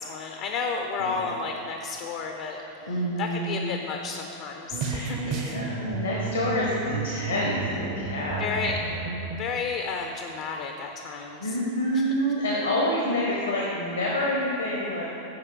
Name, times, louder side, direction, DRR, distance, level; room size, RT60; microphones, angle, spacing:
voice 1, 0.0-5.4 8.4-11.6 11.9-12.0, left 4 dB, 45° left, 4 dB, 0.5 m, -32 dB
voice 2, 1.0-1.3 2.9-3.8 4.8-8.4 11.4-15.0, equal, 75° left, -3 dB, 1.0 m, -28 dB
sound 1, 4.7-9.5, right 4 dB, 40° right, 0.6 m, -32 dB
8.9 x 4.7 x 4.7 m, 2.9 s
figure-of-eight pair, 90°, 0 cm